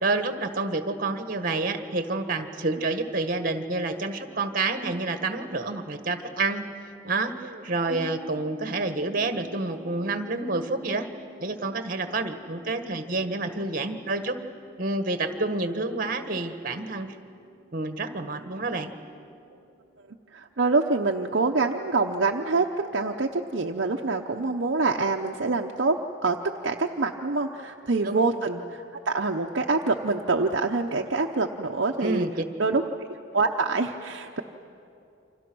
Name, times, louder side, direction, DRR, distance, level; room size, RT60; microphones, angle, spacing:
voice 1, 0.0-6.6 7.0-11.1 11.4-14.4 14.8-17.1 17.7-18.9 28.0-28.2 32.0-32.7, right 3 dB, 45° right, 8 dB, 1.5 m, -28 dB
sound 1, 7.9-20.7, right 2 dB, 25° right, 2.5 m, -51 dB
voice 2, 20.3-22.7 22.9-26.4 26.6-32.3 32.6-32.8 33.1-34.4, right 3 dB, 65° right, 2 dB, 0.8 m, -26 dB
29.0 x 25.5 x 6.2 m, 2.7 s
head